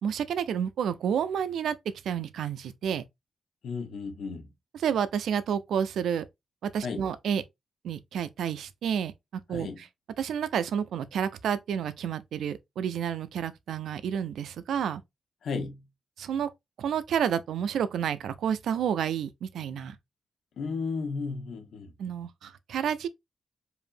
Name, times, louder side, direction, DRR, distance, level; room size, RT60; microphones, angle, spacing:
voice 1, 0.0-1.8 2.0-3.0 4.7-6.2 6.6-7.4 7.8-9.9 10.2-15.0 16.2-16.5 16.8-20.0 22.0-23.1, right 8 dB, 85° right, 0.4 m, -30 dB
voice 2, 3.6-4.5 6.8-7.1 9.5-9.8 15.4-15.8 20.6-21.9, left 4 dB, 70° left, 1.0 m, -34 dB
4.9 x 2.7 x 2.5 m
cardioid pair, 100°, 0 cm